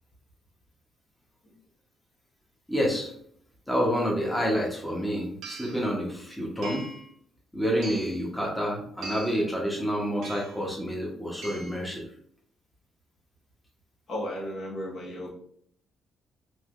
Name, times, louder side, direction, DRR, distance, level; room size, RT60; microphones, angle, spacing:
voice 1, 2.7-3.1 3.7-6.9 7.5-12.1, equal, 5° left, -2 dB, 0.8 m, -28 dB
sound 1, 5.4-5.8 6.6-7.1 7.8-8.2 9.0-9.5 10.2-10.6 11.4-11.9, right 3 dB, 80° right, 0.6 m, -41 dB
voice 2, 14.1-15.3, equal, 55° left, -3 dB, 1.2 m, -34 dB
3.2 x 2.7 x 2.4 m, 0.63 s
cardioid pair, 90°, 0 cm